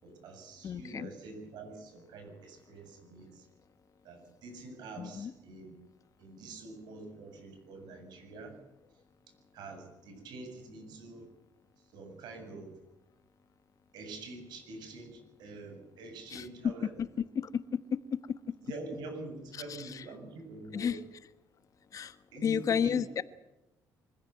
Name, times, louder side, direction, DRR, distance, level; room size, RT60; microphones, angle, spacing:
voice 1, 0.0-3.5 4.0-5.8 6.2-8.6 9.5-11.3 11.9-12.7 13.9-17.0 18.7-21.0 22.3-23.0, right 2 dB, 80° right, 5 dB, 7.6 m, -46 dB
voice 2, 0.6-1.1 5.0-5.3 16.3-16.7 17.3-18.2 18.5-18.6 19.8-20.0 20.7-21.0 21.9-22.1 22.4-23.2, left 7 dB, 50° left, 13 dB, 1.3 m, -32 dB
24.5 x 16.0 x 9.2 m, 0.94 s
cardioid pair, 95°, 7 cm